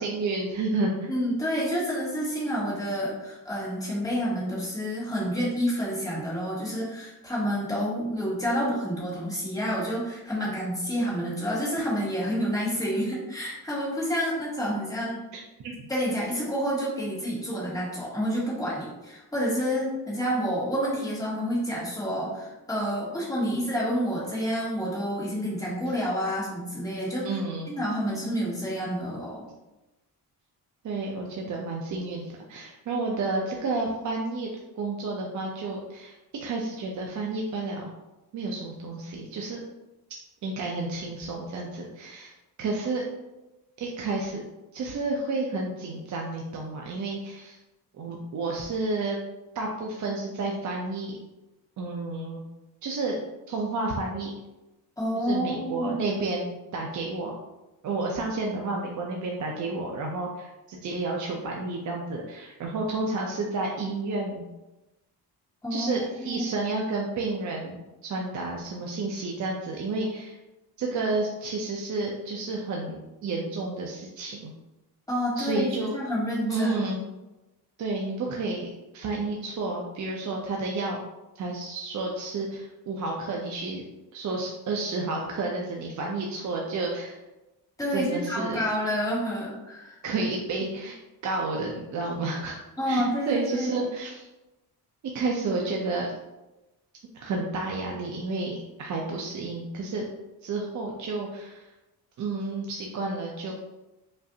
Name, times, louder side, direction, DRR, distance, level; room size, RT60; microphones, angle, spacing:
voice 1, 0.0-1.1 15.3-15.7 27.2-27.7 30.8-34.5 34.8-37.9 38.3-39.6 40.4-42.3 42.6-43.0 43.8-44.4 44.7-47.6 47.9-49.2 49.5-51.2 51.8-52.4 52.8-53.2 53.5-54.3 55.1-57.3 57.8-64.4 65.7-70.4 70.8-74.5 75.4-75.9 76.5-77.0 77.8-78.7 78.9-81.0 81.4-83.8 84.1-87.2 87.9-88.7 90.0-91.0 91.2-92.5 92.9-94.3 95.1-96.1 97.1-100.0 100.4-101.7 102.2-103.5, right 3 dB, 50° right, -1 dB, 0.5 m, -31 dB
voice 2, 1.1-15.2 15.9-27.4 27.7-29.5 55.0-56.0 65.6-65.9 66.2-66.4 75.1-77.0 87.8-90.0 92.8-93.7, equal, 10° left, -6 dB, 1.2 m, -29 dB
5.2 x 2.5 x 2.7 m, 1.0 s
wide cardioid pair, 155°, 38 cm